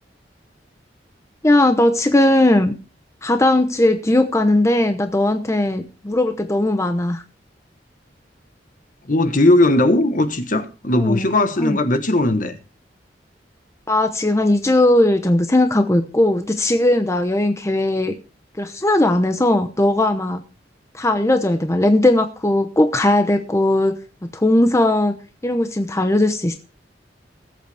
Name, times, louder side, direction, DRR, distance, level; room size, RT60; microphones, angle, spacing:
voice 1, 1.4-2.7 3.2-7.2 11.0-11.3 11.6-11.8 13.9-18.1 18.6-20.4 20.9-24.0 24.3-25.1 25.4-26.6, left 1 dB, 15° left, 0.8 m, -18 dB
voice 2, 9.0-12.6, left 1 dB, 45° left, 1.2 m, -18 dB
18.5 x 8.1 x 3.5 m
head